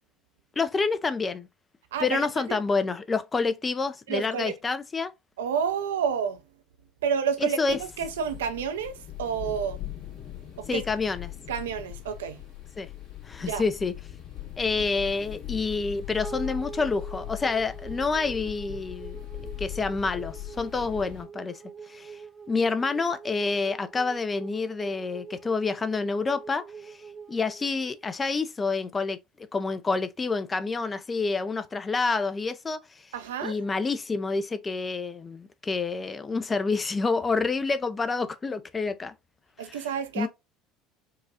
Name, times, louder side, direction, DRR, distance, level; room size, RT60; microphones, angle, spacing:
voice 1, 0.6-1.5 2.0-5.1 7.4-7.8 10.7-11.3 12.8-12.9 13.3-13.9 14.6-19.2 19.6-21.6 21.9-22.2 22.5-27.0 27.3-29.2 29.5-33.1 33.4-39.1 39.6-39.9 40.2-40.3, left 4 dB, 25° left, 0.5 m, -28 dB
voice 2, 1.9-2.2 2.5-2.6 4.1-4.5 5.4-6.4 7.0-9.8 10.6-10.8 11.5-12.4 13.5-13.6 33.1-33.6 39.6-40.3, right 7 dB, 75° right, 0.5 m, -29 dB
sound 1, 7.7-21.2, left 15 dB, 55° left, 1.9 m, -40 dB
sound 2, 16.2-28.7, right 6 dB, 20° right, 0.9 m, -44 dB
4.7 x 2.3 x 2.7 m
figure-of-eight pair, 65°, 0 cm